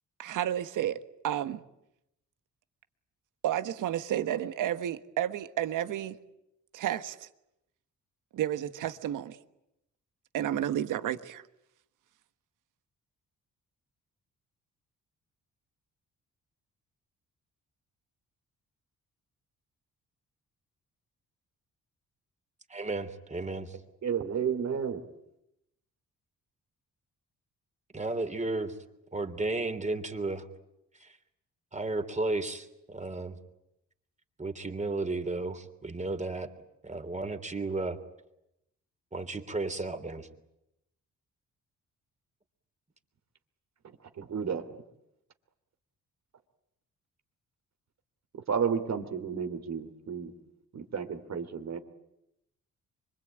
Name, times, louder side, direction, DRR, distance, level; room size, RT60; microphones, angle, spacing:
voice 1, 0.2-1.6 3.4-6.2 6.7-7.3 8.3-9.4 10.3-11.4, right 11 dB, 85° right, 1.4 m, -31 dB
voice 2, 22.7-23.8 27.9-28.7 29.1-30.4 31.0-31.1 31.7-33.4 34.4-36.5 36.8-38.0 39.1-40.3, right 2 dB, 25° right, 3.3 m, -33 dB
voice 3, 24.0-25.0 44.1-44.7 48.3-50.3 50.7-51.8, right 7 dB, 60° right, 2.9 m, -32 dB
25.0 x 23.5 x 9.0 m
cardioid pair, 80°, 31 cm